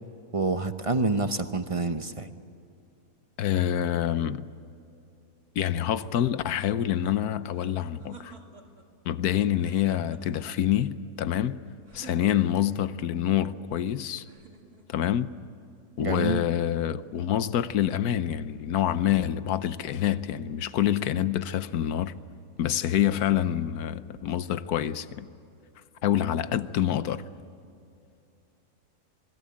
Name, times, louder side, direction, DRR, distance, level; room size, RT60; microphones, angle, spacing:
voice 1, 0.3-2.3 16.0-16.4, right 3 dB, 30° right, 0.7 m, -27 dB
voice 2, 3.4-4.5 5.6-8.3 9.0-11.6 11.9-14.2 14.9-15.3 16.0-22.1 22.6-25.3 26.0-27.2, left 11 dB, 75° left, 1.3 m, -26 dB
sound 1, 7.5-8.9 9.5-10.6 11.9-12.8 14.2-15.1, right 4 dB, 65° right, 3.5 m, -51 dB
27.0 x 21.0 x 8.6 m
omnidirectional pair, 1.7 m